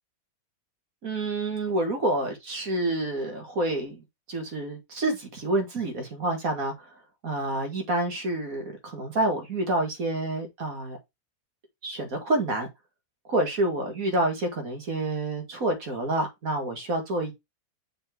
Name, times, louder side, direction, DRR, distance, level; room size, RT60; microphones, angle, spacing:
voice 1, 1.0-6.9 7.2-11.0 11.8-12.7 13.3-17.3, right 2 dB, 65° right, 2.3 m, -28 dB
6.6 x 3.9 x 4.5 m
omnidirectional pair, 1.6 m